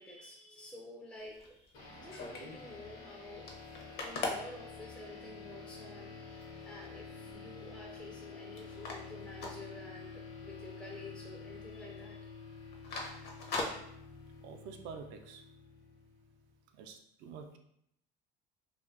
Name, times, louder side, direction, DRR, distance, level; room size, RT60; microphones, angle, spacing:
voice 1, 0.0-3.5 3.8-12.3, left 2 dB, 5° left, -2 dB, 0.3 m, -50 dB
sound 1, 1.2-2.6 3.0-3.1 3.3-5.4 6.0-6.1 6.4-6.9 7.3-8.3 8.6-10.3 10.6-10.8 11.2-11.6 11.9-12.1 12.5-14.5, left 3 dB, 55° left, 0.6 m, -41 dB
sound 2, 1.7-16.6, left 4 dB, 85° left, 0.8 m, -49 dB
voice 2, 14.4-15.4 16.7-17.6, right 5 dB, 70° right, 5 dB, 0.4 m, -47 dB
2.5 x 2.3 x 2.4 m, 0.73 s
cardioid pair, 115°, 20 cm